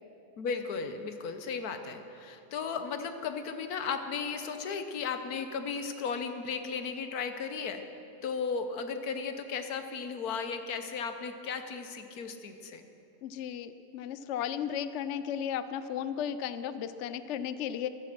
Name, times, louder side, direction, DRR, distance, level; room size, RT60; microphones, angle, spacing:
voice 1, 0.4-7.8 8.2-12.8, left 5 dB, 80° left, 8 dB, 1.5 m, -35 dB
voice 2, 13.2-17.9, left 9 dB, 65° left, 13 dB, 0.8 m, -35 dB
15.0 x 13.5 x 6.0 m, 2.9 s
omnidirectional pair, 1.6 m